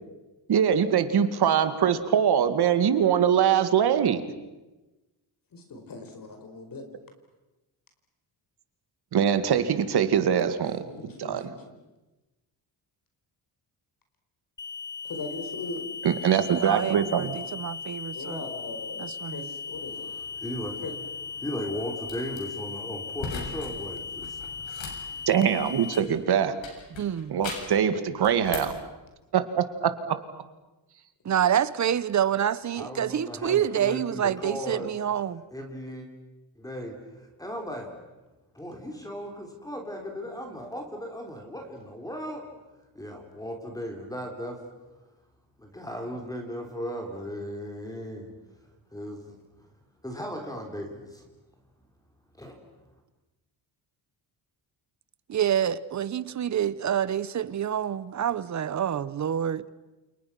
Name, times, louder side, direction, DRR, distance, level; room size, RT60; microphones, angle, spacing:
voice 1, 0.5-4.2 9.1-10.8 11.2-11.4 16.0-17.4 25.3-26.6 27.3-28.7 29.3-30.2, right 8 dB, 55° right, 2.3 m, -23 dB
voice 2, 5.5-6.8 10.8-11.6 15.0-15.9 18.1-20.1 20.8-20.9, left 3 dB, 45° left, 4.7 m, -39 dB
sound 1, 14.6-26.0, left 5 dB, 25° left, 1.4 m, -38 dB
voice 3, 16.5-18.4 19.0-19.5 27.0-27.3 31.2-35.4 55.3-59.6, right 9 dB, 40° right, 0.9 m, -27 dB
voice 4, 20.0-20.8 21.4-25.3 32.7-34.9 35.5-36.1 36.6-37.9 38.5-42.5 43.0-44.6 45.6-48.3 48.9-49.4 50.0-51.2 52.3-52.6, equal, 10° left, 3.6 m, -37 dB
sound 2, 22.0-22.4 23.2-23.7 24.0-26.2 26.6-27.8 28.2-28.8, left 4 dB, 75° left, 7.3 m, -39 dB
29.5 x 28.5 x 6.1 m
cardioid pair, 150°, 46 cm